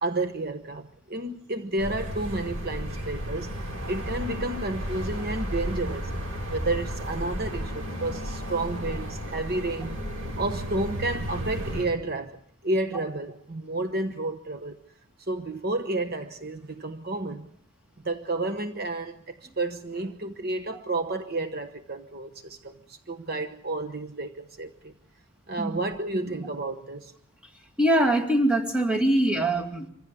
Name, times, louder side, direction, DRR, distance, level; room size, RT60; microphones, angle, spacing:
voice 1, 0.0-3.5 3.9-6.1 6.5-10.0 10.4-12.4 12.6-14.8 15.3-17.5 18.0-24.9 25.5-27.1, right 2 dB, 45° right, 1.0 m, -31 dB
sound 1, 1.8-11.9, equal, 90° right, 7.6 m, -33 dB
voice 2, 27.8-29.9, right 1 dB, 5° right, 2.3 m, -23 dB
25.5 x 15.5 x 8.3 m
head